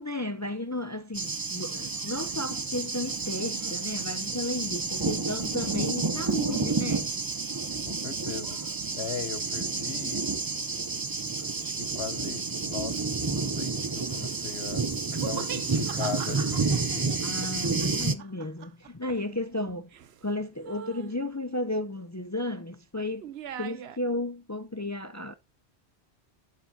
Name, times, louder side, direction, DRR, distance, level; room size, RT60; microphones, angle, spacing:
voice 1, 0.0-7.1 17.2-19.9 20.2-23.3 23.6-25.3, left 2 dB, 20° left, 0.4 m, -33 dB
Thunder, 1.1-18.1, right 4 dB, 25° right, 0.6 m, -30 dB
voice 2, 7.8-8.6 8.9-10.3 11.6-14.9 15.1-17.2, left 7 dB, 70° left, 1.1 m, -38 dB
sound 1, 15.1-20.3 20.6-21.2 23.2-24.0, right 9 dB, 75° right, 1.0 m, -41 dB
12.0 x 9.5 x 2.8 m
omnidirectional pair, 1.1 m